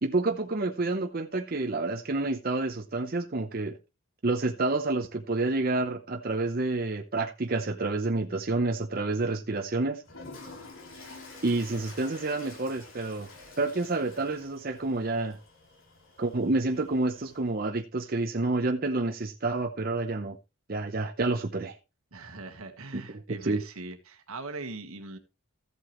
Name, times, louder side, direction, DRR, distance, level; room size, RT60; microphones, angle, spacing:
voice 1, 0.0-3.8 4.2-10.0 11.4-13.3 13.6-15.4 16.2-20.4 20.7-21.8 22.9-23.0 23.4-23.6, right 2 dB, 45° right, 0.8 m, -29 dB
Toilet flush, 10.0-17.6, left 3 dB, 70° left, 3.4 m, -49 dB
voice 2, 22.1-25.2, right 3 dB, 85° right, 1.4 m, -41 dB
14.0 x 8.1 x 3.1 m
head